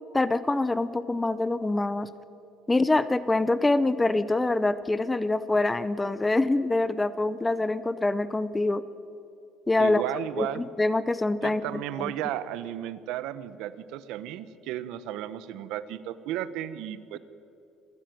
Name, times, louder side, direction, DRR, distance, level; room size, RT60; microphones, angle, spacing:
voice 1, 0.1-2.1 2.7-8.8 9.7-10.0 10.4-11.6 12.0-12.1, left 2 dB, 10° left, 15 dB, 0.6 m, -25 dB
voice 2, 9.8-10.6 11.4-17.2, right 12 dB, 75° right, 14 dB, 1.1 m, -34 dB
27.0 x 15.5 x 9.4 m, 2.7 s
cardioid pair, 165°, 0 cm